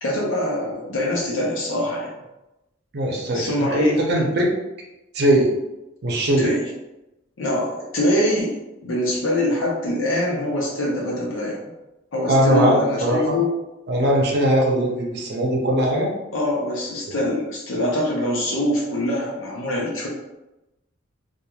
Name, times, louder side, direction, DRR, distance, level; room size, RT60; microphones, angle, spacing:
voice 1, 0.0-2.1 3.3-3.9 6.4-6.6 7.4-11.6 12.1-13.5 16.3-20.1, left 1 dB, 85° left, -4 dB, 0.7 m, -24 dB
voice 2, 2.9-4.5 5.1-5.5 6.0-6.5 12.3-13.4 13.9-16.1 17.1-17.2, right 1 dB, 55° right, -1 dB, 0.6 m, -20 dB
2.9 x 2.3 x 2.3 m, 0.96 s
head